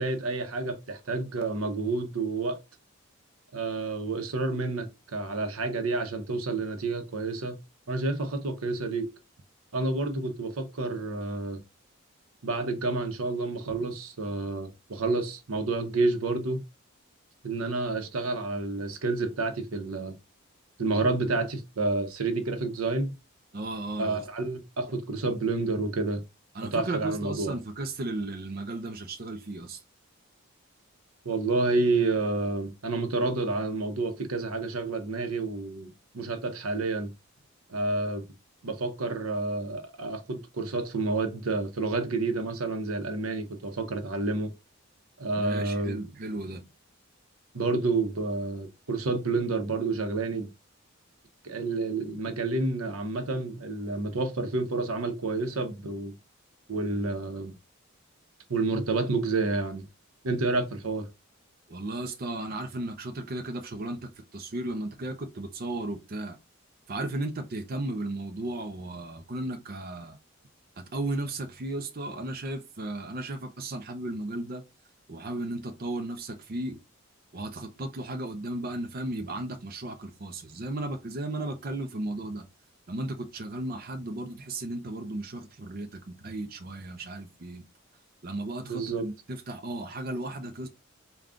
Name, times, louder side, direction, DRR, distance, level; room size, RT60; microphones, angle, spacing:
voice 1, 0.0-2.6 3.5-7.6 7.9-9.1 9.7-11.6 12.4-16.6 17.4-20.1 20.8-23.1 24.0-26.2 26.7-27.5 31.2-37.1 37.7-38.2 38.6-44.5 45.2-46.0 47.5-50.5 51.4-56.1 56.7-57.5 58.5-59.9 60.2-61.1 88.7-89.1, right 3 dB, 85° right, 0.8 m, -29 dB
voice 2, 23.5-24.2 26.5-29.8 45.4-46.6 61.7-66.4 66.9-70.2 70.8-74.6 75.1-76.8 77.3-82.4 82.9-87.7 88.2-90.7, right 2 dB, 45° right, 0.5 m, -35 dB
3.6 x 2.3 x 3.6 m
head